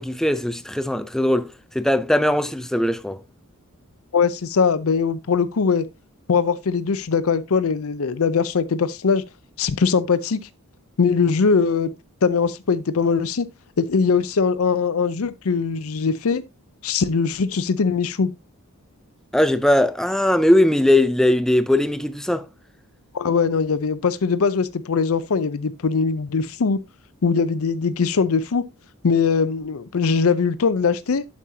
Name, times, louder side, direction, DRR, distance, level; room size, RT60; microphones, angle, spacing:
voice 1, 0.0-3.2 19.3-22.5, left 1 dB, ahead, 0.4 m, -19 dB
voice 2, 4.1-5.8 6.3-9.2 9.6-10.4 11.0-11.9 12.2-13.5 13.8-16.4 16.8-18.3 23.1-26.8 27.2-28.6 29.0-31.2, left 5 dB, 70° left, 0.6 m, -21 dB
8.3 x 7.3 x 2.8 m
head